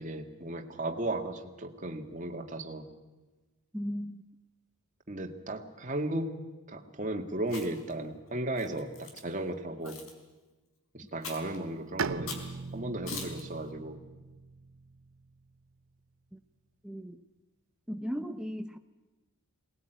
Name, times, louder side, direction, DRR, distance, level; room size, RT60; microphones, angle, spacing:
voice 1, 0.0-2.9 5.1-6.4 6.7-10.0 10.9-12.4 12.7-14.0, right 1 dB, 35° right, 4 dB, 1.9 m, -35 dB
voice 2, 3.7-4.2 16.3-16.4 16.8-17.2 17.9-18.8, equal, 5° right, 6 dB, 0.7 m, -36 dB
Chewing mastication, 7.4-7.9 8.6-9.2 9.8-10.1 11.2-11.6 12.3-12.5 13.1-13.4, left 4 dB, 70° left, 4.2 m, -41 dB
Bowed string instrument, 12.0-15.6, right 5 dB, 60° right, 0.9 m, -39 dB
22.5 x 19.0 x 9.2 m, 1.2 s
head